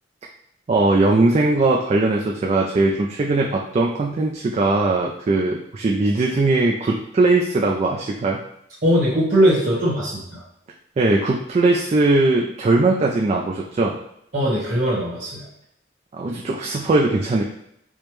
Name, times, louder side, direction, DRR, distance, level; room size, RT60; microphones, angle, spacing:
voice 1, 0.7-8.4 11.0-14.0 16.1-17.4, right 2 dB, 35° right, 0 dB, 0.3 m, -19 dB
voice 2, 8.8-10.4 14.3-15.5, equal, 50° right, -9 dB, 1.1 m, -20 dB
4.9 x 2.1 x 3.0 m, 0.74 s
head